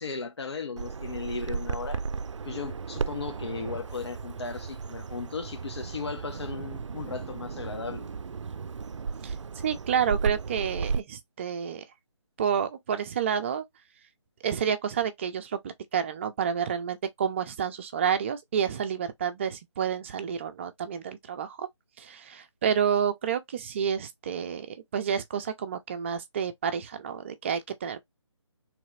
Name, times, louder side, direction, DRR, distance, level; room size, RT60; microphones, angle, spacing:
voice 1, 0.0-2.0 2.4-8.1, left 4 dB, 60° left, 1.1 m, -36 dB
Bird vocalization bird call bird song, 0.8-11.0, right 5 dB, 80° right, 0.4 m, -35 dB
voice 2, 9.2-11.8 12.4-13.6 14.4-21.7 22.0-28.0, right 7 dB, 25° right, 0.6 m, -29 dB
3.8 x 3.3 x 3.2 m
figure-of-eight pair, 155°, 15 cm